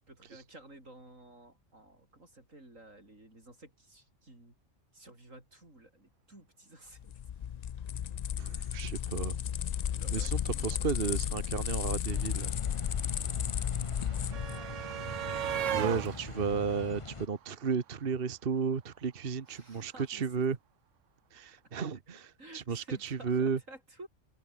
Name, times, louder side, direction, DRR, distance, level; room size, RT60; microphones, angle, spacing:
voice 1, 0.1-4.5 4.9-7.2 8.6-8.7 9.9-10.9 14.0-14.7 15.8-16.2 19.5-20.4 22.4-24.1, right 1 dB, 90° right, 7.9 m, -53 dB
sound 1, 7.0-14.6, left 9 dB, 70° left, 0.4 m, -34 dB
voice 2, 8.4-9.4 10.1-12.5 15.7-20.6 21.3-23.6, right 5 dB, 50° right, 1.4 m, -33 dB
sound 2, 11.5-11.6 11.8-18.0 19.2-19.3 19.6-19.7, right 9 dB, 70° right, 1.2 m, -39 dB
sound 3, 12.1-17.3, left 4 dB, 25° left, 1.1 m, -43 dB
omnidirectional pair, 1.3 m